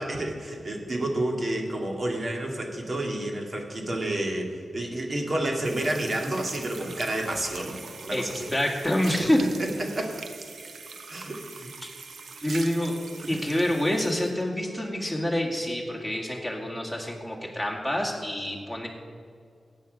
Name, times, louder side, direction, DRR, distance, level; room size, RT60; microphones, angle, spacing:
voice 1, 0.0-7.8 8.0-8.5 9.9-10.2 11.1-11.7, right 1 dB, 45° right, 1 dB, 2.2 m, -30 dB
sound 1, 5.6-14.4, right 4 dB, 75° right, 1.0 m, -42 dB
voice 2, 8.1-9.4 12.4-18.9, left 1 dB, ahead, -1 dB, 2.2 m, -27 dB
15.5 x 8.8 x 5.3 m, 2.3 s
wide cardioid pair, 80°, 0 cm